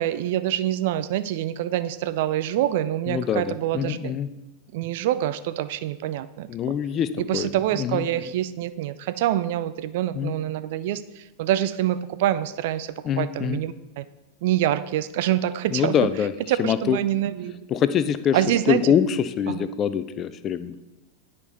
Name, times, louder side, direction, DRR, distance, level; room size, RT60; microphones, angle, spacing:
voice 1, 0.0-4.1 4.7-6.5 7.3-14.0 14.4-15.9 16.5-17.5 18.3-18.8 19.5-19.7, right 12 dB, 50° right, 14 dB, 0.3 m, -26 dB
voice 2, 3.1-4.3 6.5-7.5 7.8-8.3 10.1-10.3 13.0-13.6 15.7-16.3 16.6-17.0 17.7-18.4 18.7-20.8, left 8 dB, 30° left, 13 dB, 0.4 m, -24 dB
9.8 x 4.4 x 4.1 m, 1.0 s
figure-of-eight pair, 90°, 0 cm